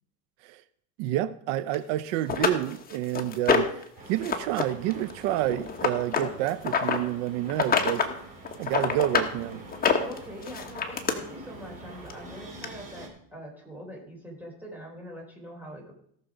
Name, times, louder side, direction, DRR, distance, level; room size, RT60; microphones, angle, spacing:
voice 1, 1.0-3.7 4.1-8.1 8.6-9.6, right 13 dB, 85° right, 0.6 m, -29 dB
sound 1, 1.7-1.8 2.3-3.8 4.2-4.6 4.9-7.0 7.5-8.1 8.5-9.3 9.7-11.1 12.1-12.2 12.6-12.7, left 6 dB, 25° left, 1.4 m, -26 dB
sound 2, 4.0-13.1, right 2 dB, 25° right, 3.6 m, -46 dB
voice 2, 10.0-15.9, equal, 5° right, 3.8 m, -43 dB
17.0 x 6.5 x 5.0 m
cardioid pair, 130°, 33 cm